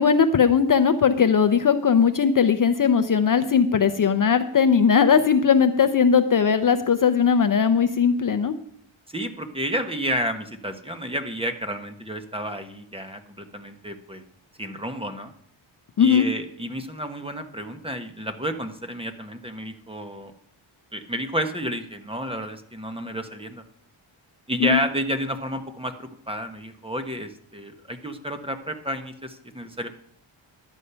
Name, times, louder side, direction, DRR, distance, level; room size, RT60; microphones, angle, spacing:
voice 1, 0.0-8.5 16.0-16.3 24.6-24.8, left 6 dB, 40° left, 9 dB, 0.6 m, -19 dB
voice 2, 9.1-14.2 14.6-15.3 16.0-20.3 20.9-23.6 24.5-29.9, equal, 10° right, 7 dB, 0.9 m, -31 dB
11.5 x 8.1 x 5.6 m, 0.66 s
wide cardioid pair, 145°, 50 cm